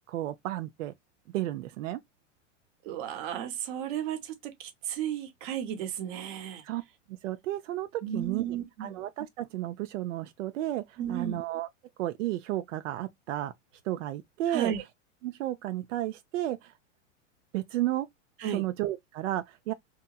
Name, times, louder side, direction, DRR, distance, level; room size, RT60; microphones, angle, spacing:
voice 1, 0.1-0.9 1.3-2.0 6.6-6.8 7.1-11.7 12.0-13.5 13.8-14.7 15.2-16.7 17.5-18.1 18.5-19.7, right 14 dB, 80° right, 0.5 m, -33 dB
voice 2, 2.8-6.6 8.0-9.0 11.0-11.4 14.5-14.8 18.4-18.7, right 9 dB, 40° right, 0.8 m, -34 dB
2.9 x 2.3 x 2.2 m
supercardioid pair, 155°, 37 cm